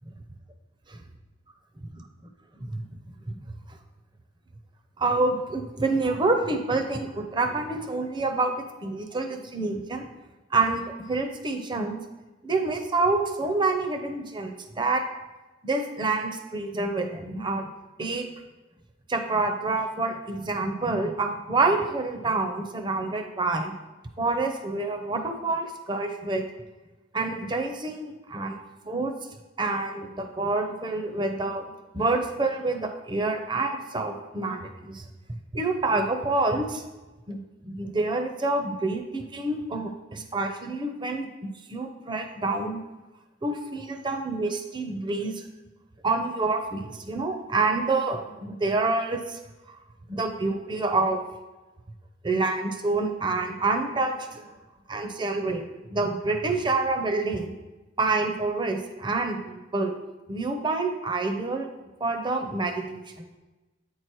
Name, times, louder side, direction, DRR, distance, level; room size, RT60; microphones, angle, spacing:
voice 1, 5.0-10.1 10.5-12.0 12.4-15.0 15.6-17.7 18.0-18.2 19.1-23.7 24.2-26.4 27.1-28.6 28.9-29.1 29.6-31.6 31.9-36.8 37.3-42.8 43.4-45.4 46.0-49.4 50.1-51.2 52.2-54.5 54.9-57.5 58.0-59.9 60.3-61.7 62.0-63.3, right 3 dB, 25° right, 5 dB, 0.7 m, -27 dB
8.5 x 4.7 x 4.5 m, 1.1 s
head